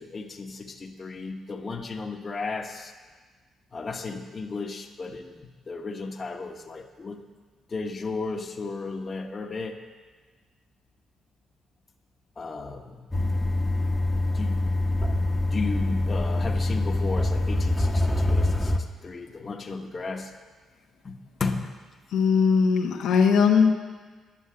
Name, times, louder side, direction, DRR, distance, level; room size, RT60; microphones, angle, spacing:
voice 1, 0.0-2.9 3.7-7.2 7.7-9.8 12.4-13.1 14.3-14.7 15.5-18.7 19.0-20.3 21.0-21.7, left 4 dB, 35° left, 4 dB, 1.0 m, -34 dB
sound 1, 13.1-18.8, left 2 dB, 10° left, 0.9 m, -25 dB
voice 2, 22.1-23.7, left 6 dB, 85° left, 2 dB, 0.9 m, -19 dB
10.0 x 7.1 x 7.6 m, 1.4 s
cardioid pair, 90°, 0 cm